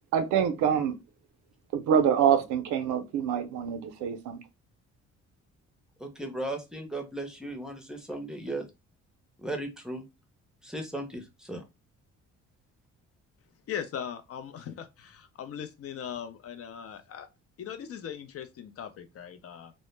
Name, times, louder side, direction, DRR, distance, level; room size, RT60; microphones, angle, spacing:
voice 1, 0.1-0.9 1.7-4.4, right 8 dB, 90° right, 0.5 m, -25 dB
voice 2, 6.0-8.7 9.4-10.0 10.6-11.6, right 1 dB, ahead, 0.5 m, -36 dB
voice 3, 13.7-17.3 17.6-19.7, left 8 dB, 50° left, 0.4 m, -39 dB
2.0 x 2.0 x 3.1 m
cardioid pair, 90°, 30 cm